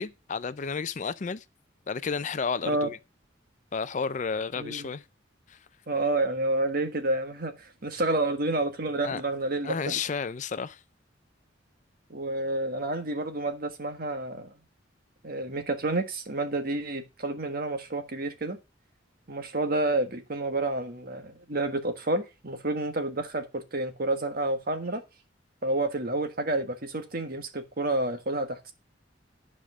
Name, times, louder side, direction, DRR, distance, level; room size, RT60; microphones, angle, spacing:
voice 1, 0.0-1.4 1.9-3.0 3.7-5.0 5.5-5.6 9.0-9.2 9.6-10.8, left 5 dB, 40° left, 0.4 m, -32 dB
voice 2, 4.6-4.9 5.9-10.0 12.1-14.5 15.2-18.6 19.3-25.0 25.6-28.7, right 2 dB, 50° right, 1.5 m, -29 dB
10.5 x 5.0 x 6.1 m
head